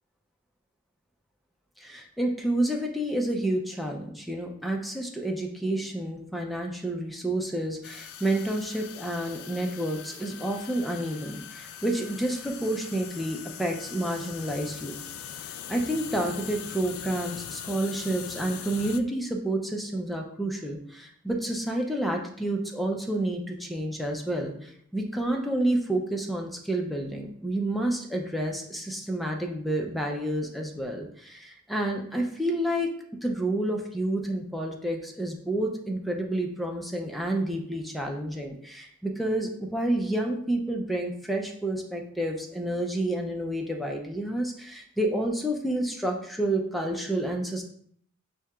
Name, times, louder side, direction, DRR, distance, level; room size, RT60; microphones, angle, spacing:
voice 1, 1.8-15.0 15.7-32.9 33.2-47.6, right 1 dB, ahead, 1 dB, 0.4 m, -29 dB
sound 1, 7.8-19.0, left 9 dB, 75° left, 0.3 m, -41 dB
6.0 x 2.7 x 2.3 m, 0.64 s
head